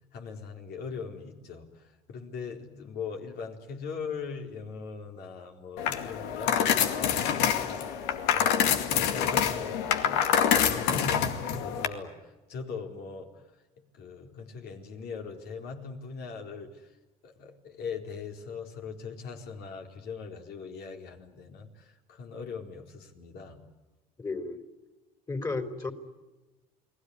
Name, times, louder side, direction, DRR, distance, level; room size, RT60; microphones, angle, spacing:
voice 1, 0.1-13.4 13.9-16.9 17.2-23.6, left 5 dB, 65° left, 3 dB, 4.2 m, -41 dB
sound 1, 5.8-11.9, left 8 dB, 85° left, 2.2 m, -26 dB
voice 2, 24.2-24.6 25.3-25.9, left 3 dB, 20° left, 7 dB, 3.9 m, -33 dB
29.5 x 20.0 x 9.7 m, 1.2 s
supercardioid pair, 90°, 17 cm